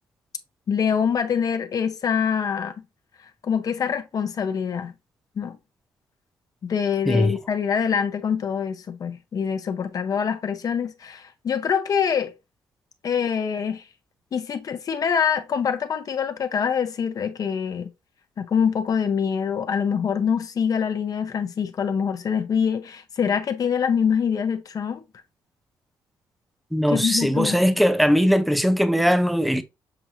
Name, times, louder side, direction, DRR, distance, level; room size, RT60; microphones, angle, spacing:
voice 1, 0.7-2.7 3.4-4.9 5.4-5.6 6.6-12.3 13.0-13.8 14.3-17.9 18.4-25.0 26.9-27.6, left 7 dB, 50° left, 0.7 m, -25 dB
voice 2, 7.1-7.4 26.7-29.6, equal, ahead, 0.5 m, -20 dB
6.8 x 2.5 x 2.9 m
cardioid pair, 105°, 8 cm